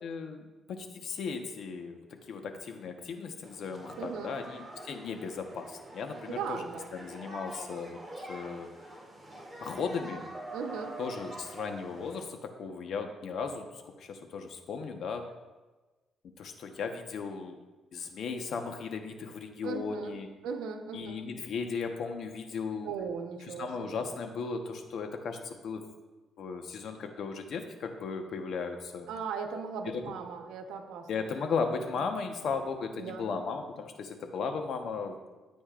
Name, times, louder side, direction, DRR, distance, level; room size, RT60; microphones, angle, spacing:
voice 1, 0.0-6.6 6.9-8.7 9.6-10.2 11.0-15.2 16.4-17.6 17.9-20.3 20.9-22.9 23.5-25.8 26.4-29.1 29.8-30.0 31.1-35.2, left 5 dB, 65° left, 5 dB, 1.1 m, -36 dB
sound 1, 3.4-12.2, right 1 dB, 5° right, 2.5 m, -46 dB
voice 2, 4.0-4.3 6.3-6.9 10.5-10.9 19.6-20.1 20.4-21.2 22.8-24.0 29.1-31.3 31.9-32.0 32.9-33.3, right 6 dB, 90° right, 4 dB, 1.0 m, -38 dB
13.0 x 8.6 x 2.5 m, 1.2 s
cardioid pair, 90°, 0 cm